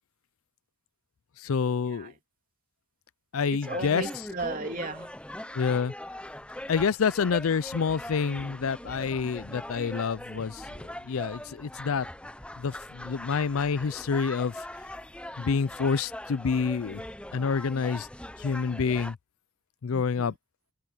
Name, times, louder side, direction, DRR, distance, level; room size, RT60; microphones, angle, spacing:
voice 1, 1.4-2.1 3.3-4.1 5.5-5.9 6.7-10.6 11.0-12.1 12.6-14.6 15.4-17.0 17.3-18.1 18.4-19.2 19.8-20.3, left 5 dB, 85° left, 0.5 m, -28 dB
sound 1, 3.6-19.1, left 1 dB, 5° left, 0.7 m, -41 dB
voice 2, 3.7-5.1 19.9-20.3, right 3 dB, 40° right, 2.9 m, -35 dB
open air
head